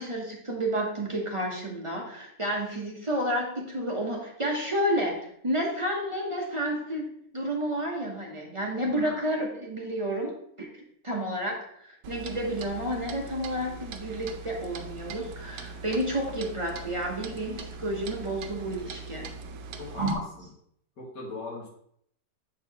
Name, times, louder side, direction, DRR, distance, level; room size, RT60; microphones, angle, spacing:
voice 1, 0.0-19.3 20.0-20.2, right 1 dB, 35° right, -1 dB, 0.5 m, -31 dB
voice 2, 8.8-9.2 19.8-20.0 20.4-20.5 21.0-21.7, left 3 dB, 70° left, -5 dB, 2.4 m, -40 dB
Clock, 12.0-20.1, right 4 dB, 70° right, 1.1 m, -41 dB
7.6 x 4.6 x 2.8 m, 0.70 s
omnidirectional pair, 1.9 m